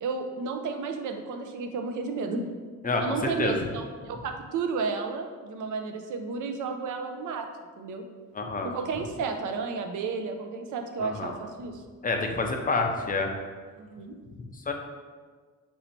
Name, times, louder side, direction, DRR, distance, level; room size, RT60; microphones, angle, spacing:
voice 1, 0.0-2.5 3.0-7.5 7.8-8.1 8.6-11.8 13.8-14.1, right 4 dB, 70° right, 5 dB, 0.5 m, -32 dB
voice 2, 2.8-3.5 8.4-8.7 11.0-11.3 12.0-13.3 14.7-14.8, left 3 dB, 25° left, 3 dB, 0.4 m, -28 dB
3.0 x 2.7 x 4.4 m, 1.5 s
cardioid pair, 100°, 32 cm